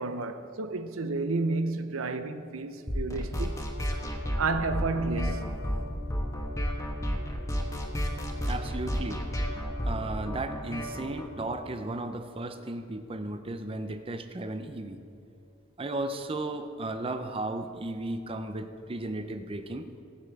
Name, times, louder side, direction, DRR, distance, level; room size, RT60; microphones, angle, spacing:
voice 1, 0.0-3.5 4.4-5.6, right 3 dB, 90° right, 0.7 m, -31 dB
sound 1, 2.9-11.3, equal, 15° left, 1.2 m, -32 dB
voice 2, 8.5-9.3 9.6-15.0 15.8-19.8, right 2 dB, 25° right, 0.6 m, -35 dB
17.5 x 8.4 x 4.8 m
head